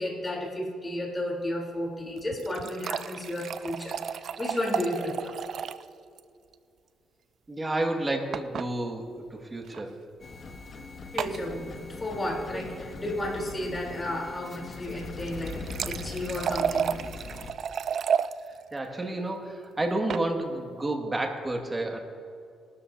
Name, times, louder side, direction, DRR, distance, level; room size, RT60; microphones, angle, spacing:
voice 1, 0.0-5.4 11.1-17.0, left 1 dB, 25° left, -2 dB, 3.5 m, -33 dB
sound 1, 2.2-5.9 6.2-6.3 6.5-6.6 8.3-8.7 9.6-9.8 11.2-11.4 15.2-18.3 19.8-20.3, right 7 dB, 60° right, 0.4 m, -32 dB
voice 2, 7.5-9.0 9.3-9.9 12.5-12.6 18.7-22.0, right 2 dB, 20° right, 2 dB, 1.9 m, -30 dB
sound 2, 10.2-17.5, left 3 dB, 45° left, 1.2 m, -41 dB
20.5 x 12.5 x 2.7 m, 2.4 s
cardioid pair, 90°, 0 cm